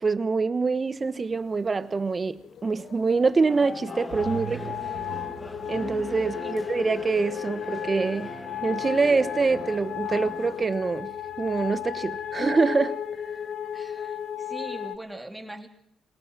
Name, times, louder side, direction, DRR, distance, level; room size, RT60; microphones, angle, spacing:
voice 1, 0.0-4.7 5.6-8.3 8.6-13.0, right 4 dB, 30° right, 1.2 m, -25 dB
sound 1, 2.4-15.0, left 9 dB, 60° left, 0.8 m, -35 dB
sound 2, 3.5-10.7, left 1 dB, 15° left, 1.5 m, -41 dB
sound 3, 4.1-12.6, right 13 dB, 80° right, 1.0 m, -46 dB
voice 2, 13.7-15.7, right 1 dB, 10° right, 3.2 m, -41 dB
22.5 x 18.5 x 6.2 m
cardioid pair, 90°, 0 cm